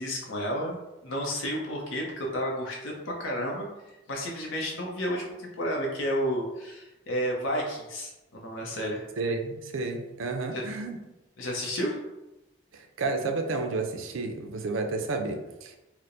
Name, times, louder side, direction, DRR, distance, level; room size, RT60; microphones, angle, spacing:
voice 1, 0.0-3.7 4.1-9.1 10.5-10.6 11.4-12.0, equal, 80° left, -1 dB, 0.7 m, -31 dB
voice 2, 9.2-11.0 12.7-15.7, right 3 dB, 85° right, 5 dB, 0.5 m, -31 dB
4.3 x 2.1 x 2.5 m, 0.99 s
head